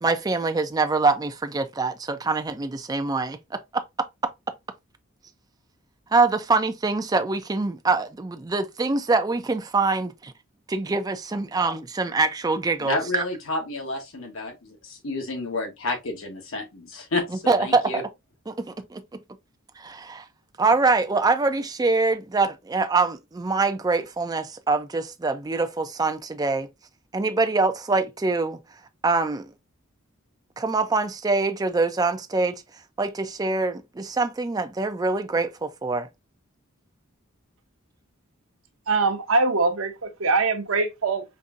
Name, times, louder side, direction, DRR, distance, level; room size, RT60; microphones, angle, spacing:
voice 1, 0.0-3.8 6.1-10.3 10.7-13.2 17.3-18.0 18.5-19.0 19.8-20.2 20.6-26.7 27.1-28.6 29.0-29.5 30.6-32.5 33.0-36.1, right 3 dB, 20° right, 0.4 m, -24 dB
voice 2, 12.8-18.0, left 2 dB, 70° left, 1.1 m, -30 dB
voice 3, 38.9-41.2, right 3 dB, 75° right, 0.7 m, -23 dB
5.2 x 2.6 x 2.4 m
head